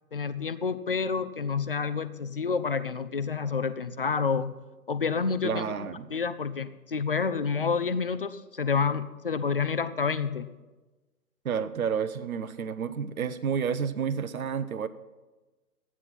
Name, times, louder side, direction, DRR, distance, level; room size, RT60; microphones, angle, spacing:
voice 1, 0.1-4.5 4.9-5.7 6.1-10.5, left 5 dB, 40° left, 13 dB, 0.5 m, -29 dB
voice 2, 5.4-6.1 11.4-14.9, right 7 dB, 60° right, 14 dB, 0.8 m, -30 dB
13.5 x 9.7 x 5.8 m, 1.2 s
figure-of-eight pair, 130°, 47 cm